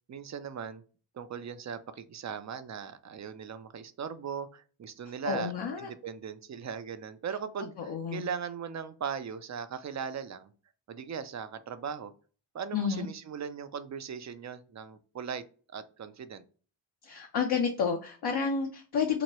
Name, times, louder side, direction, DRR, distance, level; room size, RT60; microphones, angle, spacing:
voice 1, 0.1-0.8 1.1-5.5 5.8-10.5 10.9-12.1 12.5-15.4 15.7-16.4, right 7 dB, 35° right, 11 dB, 0.5 m, -38 dB
voice 2, 5.2-5.9 7.8-8.3 12.7-13.1 17.0-19.2, left 6 dB, 55° left, 2 dB, 0.6 m, -30 dB
3.0 x 2.2 x 2.9 m, 0.38 s
cardioid pair, 40°, 48 cm